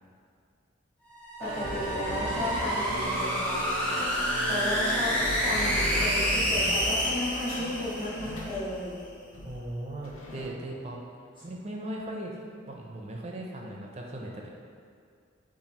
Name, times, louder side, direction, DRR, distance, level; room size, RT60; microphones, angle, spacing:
sound 1, 1.1-8.6, equal, 5° left, 0.6 m, -29 dB
voice 1, 1.4-4.1 4.4-9.0, left 1 dB, 25° left, -12 dB, 1.0 m, -34 dB
sound 2, 1.4-8.6, right 2 dB, 85° right, 0.6 m, -38 dB
sound 3, 4.0-10.5, left 1 dB, 80° left, 0.7 m, -39 dB
voice 2, 9.4-11.0 11.4-12.4 12.7-14.5, right 1 dB, 30° right, -1 dB, 0.5 m, -38 dB
7.1 x 2.5 x 2.9 m, 2.3 s
head